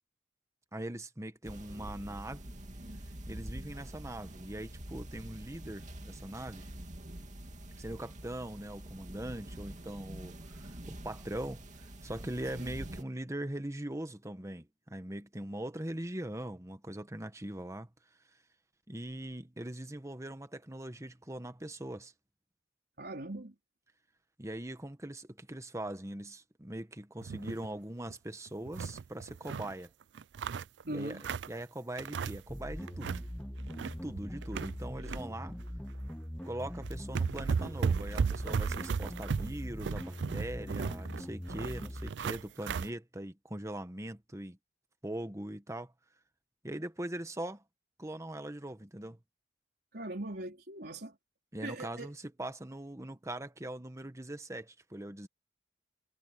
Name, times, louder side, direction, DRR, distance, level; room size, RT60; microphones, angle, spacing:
voice 1, 0.7-2.4 3.3-6.7 7.8-17.9 18.9-22.1 24.4-29.9 30.9-31.2 31.5-33.1 33.8-35.6 36.4-44.6 45.0-45.9 46.6-47.6 48.0-49.2 51.5-55.3, right 1 dB, 15° right, 1.4 m, -41 dB
sound 1, 1.4-13.0, right 1 dB, 45° right, 2.5 m, -46 dB
voice 2, 23.0-23.5 30.8-31.2 49.9-51.2 51.6-52.1, right 1 dB, 65° right, 4.0 m, -40 dB
sound 2, 27.2-27.7 28.0-28.1 28.5-29.7 30.1-31.6 32.0-32.6 32.8-33.3 33.6-35.2 35.6-35.8 36.5-36.6 36.8-42.9, right 6 dB, 80° right, 0.4 m, -35 dB
sound 3, 32.5-42.1, equal, 5° left, 0.5 m, -42 dB
head